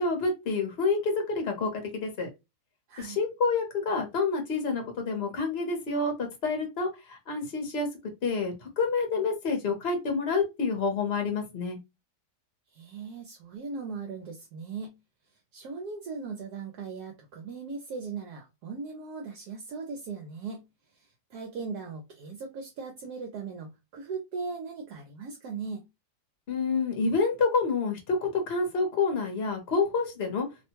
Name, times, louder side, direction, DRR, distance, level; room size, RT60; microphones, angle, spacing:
voice 1, 0.0-2.3 3.0-7.9 8.2-11.8 26.5-30.5, left 4 dB, 45° left, 1.0 m, -28 dB
voice 2, 12.7-15.0 15.5-20.6 20.9-25.9, right 4 dB, 75° right, 1.1 m, -38 dB
2.9 x 2.2 x 2.9 m
omnidirectional pair, 1.8 m